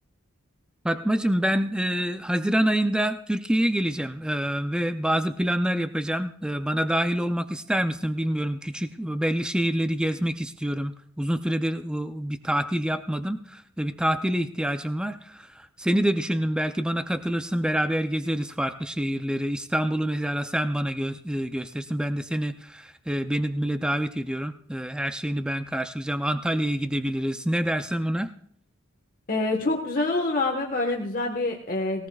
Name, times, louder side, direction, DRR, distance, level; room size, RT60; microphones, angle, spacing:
voice 1, 0.8-28.3, right 1 dB, 5° right, 8 dB, 0.4 m, -26 dB
voice 2, 29.3-32.1, left 2 dB, 40° left, 2 dB, 1.4 m, -26 dB
20.0 x 18.0 x 2.4 m, 0.63 s
head